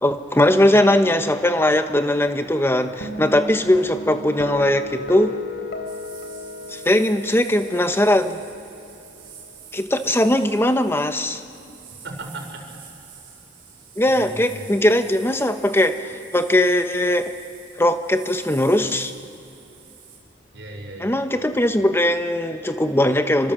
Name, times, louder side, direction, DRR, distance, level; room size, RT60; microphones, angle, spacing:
voice 1, 0.0-5.3 6.7-8.4 9.7-11.4 14.0-17.3 17.8-19.1 21.0-23.5, left 1 dB, 15° left, 8 dB, 1.0 m, -19 dB
sound 1, 3.0-9.6, left 2 dB, 75° left, 3.5 m, -35 dB
sound 2, 5.8-20.2, right 7 dB, 55° right, 7.4 m, -46 dB
voice 2, 12.0-12.8 14.0-14.7 20.5-21.2, right 2 dB, 85° right, 2 dB, 5.1 m, -36 dB
27.0 x 25.5 x 7.5 m, 2.8 s
head